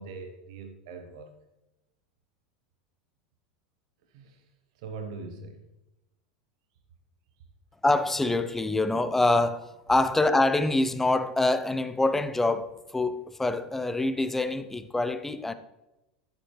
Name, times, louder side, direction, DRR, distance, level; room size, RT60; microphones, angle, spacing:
voice 1, 0.0-1.3 4.1-4.5 4.7-5.6, right 4 dB, 55° right, 0.9 m, -41 dB
voice 2, 7.8-15.5, left 2 dB, 10° left, 0.6 m, -25 dB
14.0 x 7.5 x 3.1 m
figure-of-eight pair, 80°, 4 cm